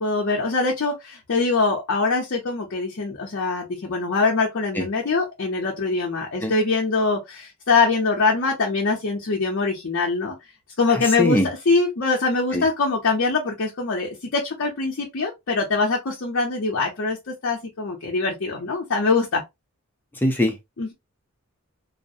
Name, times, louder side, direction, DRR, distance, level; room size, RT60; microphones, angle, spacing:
voice 1, 0.0-10.4 10.8-19.4 20.8-20.9, left 3 dB, 60° left, 0.6 m, -23 dB
voice 2, 10.9-11.5 12.5-12.6 20.2-20.5, left 1 dB, 10° left, 0.5 m, -21 dB
2.3 x 2.0 x 2.6 m
head